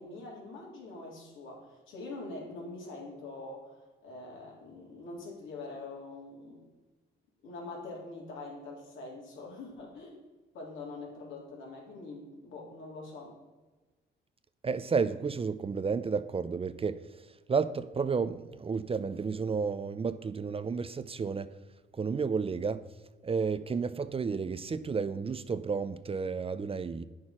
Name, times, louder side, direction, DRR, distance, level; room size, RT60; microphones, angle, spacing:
voice 1, 0.0-6.7 7.4-10.2 10.5-13.3, left 3 dB, 80° left, 3.5 m, -44 dB
voice 2, 14.6-17.0 17.5-21.5 21.9-22.8 23.2-27.0, right 5 dB, 30° right, 0.5 m, -31 dB
9.3 x 6.5 x 5.9 m
cardioid pair, 90°, 20 cm